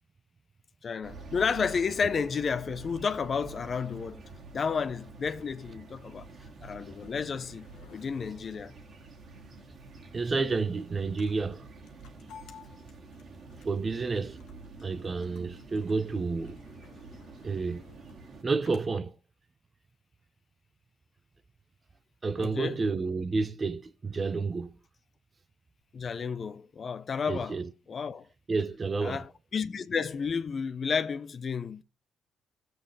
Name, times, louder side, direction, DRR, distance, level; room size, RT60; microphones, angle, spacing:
voice 1, 0.8-4.2 4.5-6.3 6.6-7.7 7.9-8.7 22.4-22.8 25.9-27.6 27.9-28.3 29.0-29.3 29.5-31.8, left 6 dB, 45° left, 0.7 m, -31 dB
sound 1, 1.0-18.4, right 3 dB, 55° right, 2.3 m, -48 dB
sound 2, 5.1-18.9, left 6 dB, 85° left, 1.5 m, -57 dB
voice 2, 10.1-11.7 13.6-14.4 14.8-16.6 17.4-17.8 18.4-19.1 22.2-24.7 27.3-27.7 28.5-29.2, right 4 dB, 30° right, 1.0 m, -30 dB
17.0 x 7.9 x 3.4 m
cardioid pair, 85°, 0 cm